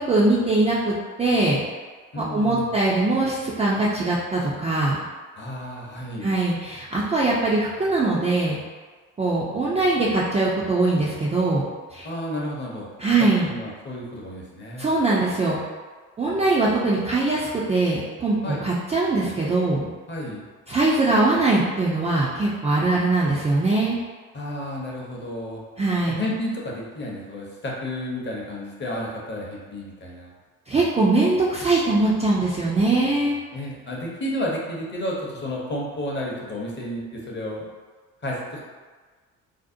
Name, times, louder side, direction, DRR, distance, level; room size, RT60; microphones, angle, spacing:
voice 1, 0.0-1.6 2.2-5.0 6.2-8.6 9.2-11.6 11.9-12.1 13.0-13.5 14.8-15.6 16.2-19.9 20.7-24.0 25.8-26.2 30.7-33.4, right 2 dB, 15° right, -7 dB, 0.3 m, -22 dB
voice 2, 2.1-2.8 5.4-6.3 12.0-12.9 13.2-14.9 18.4-18.7 20.1-20.4 24.3-25.6 26.1-30.3 33.5-37.7 38.2-38.6, left 1 dB, 25° left, -3 dB, 0.7 m, -31 dB
2.6 x 2.0 x 2.5 m, 1.4 s
hypercardioid pair, 50°, 41 cm